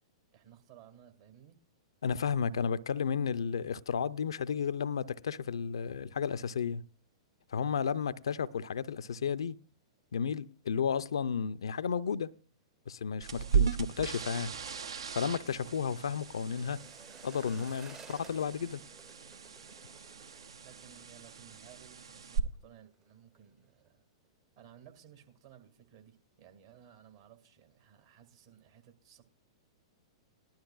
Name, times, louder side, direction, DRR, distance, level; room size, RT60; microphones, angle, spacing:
voice 1, 0.3-1.6 13.3-13.6 20.6-24.1 24.6-29.2, right 10 dB, 55° right, 2.0 m, -57 dB
voice 2, 2.0-6.8 7.5-9.6 10.1-12.3 12.9-14.5 15.1-16.8 17.2-18.8, left 7 dB, 70° left, 0.4 m, -33 dB
sound 1, 13.2-22.4, right 8 dB, 70° right, 0.9 m, -37 dB
sound 2, 13.5-22.5 22.7-23.1 23.4-23.9 24.2-24.3, right 5 dB, 20° right, 0.7 m, -58 dB
18.5 x 12.0 x 2.4 m
figure-of-eight pair, 105°, 3 cm